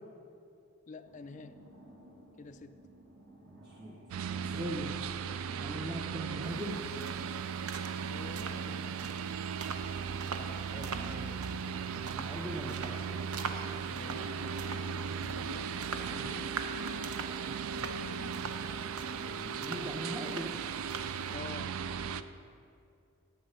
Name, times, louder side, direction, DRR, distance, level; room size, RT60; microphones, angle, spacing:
voice 1, 0.9-1.7 2.4-2.8 8.1-9.3 10.4-10.7 13.9-16.5 21.3-21.9, left 4 dB, 35° left, 10 dB, 0.3 m, -49 dB
sound 1, 1.0-17.0, right 1 dB, 55° right, 1.7 m, -56 dB
voice 2, 3.4-5.0 5.6-6.9 10.7-11.4 11.7-13.0 17.5-18.9 19.2-20.6 21.0-21.1, right 1 dB, 20° right, -1 dB, 0.6 m, -42 dB
sound 2, 4.1-22.2, right 6 dB, 70° right, 0.3 m, -37 dB
sound 3, 6.4-21.4, right 5 dB, 90° right, 0.7 m, -45 dB
10.0 x 8.0 x 5.5 m, 2.5 s
head